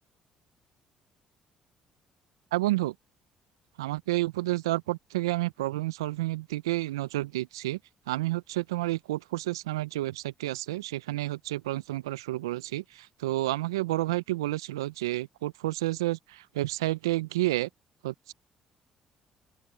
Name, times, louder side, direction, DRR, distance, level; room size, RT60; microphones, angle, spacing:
voice 1, 2.5-2.9 3.8-7.8 8.1-17.7 18.0-18.3, right 17 dB, 85° right, 0.5 m, -30 dB
open air
hypercardioid pair, 50°, 2 cm